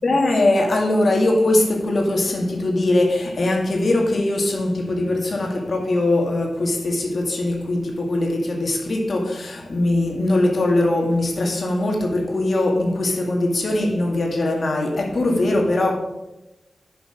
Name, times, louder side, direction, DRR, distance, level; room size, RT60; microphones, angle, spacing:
voice 1, 0.0-16.0, left 2 dB, 55° left, 2.1 m, -21 dB
10.5 x 5.9 x 5.1 m
wide cardioid pair, 105°, 0 cm